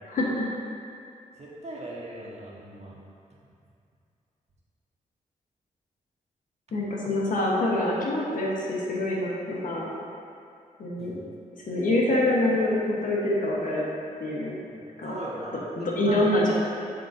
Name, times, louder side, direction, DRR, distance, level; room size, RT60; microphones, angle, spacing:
voice 1, 0.0-0.5 6.7-9.9 10.8-11.2 11.7-13.9 14.2-14.6 15.0-15.2 15.8-16.5, left 1 dB, 70° left, -4 dB, 1.2 m, -25 dB
voice 2, 1.4-3.0 11.0-11.2 15.0-15.6 16.1-16.2, right 1 dB, 50° right, -5 dB, 1.4 m, -39 dB
11.5 x 3.8 x 2.7 m, 2.5 s
cardioid pair, 95°, 14 cm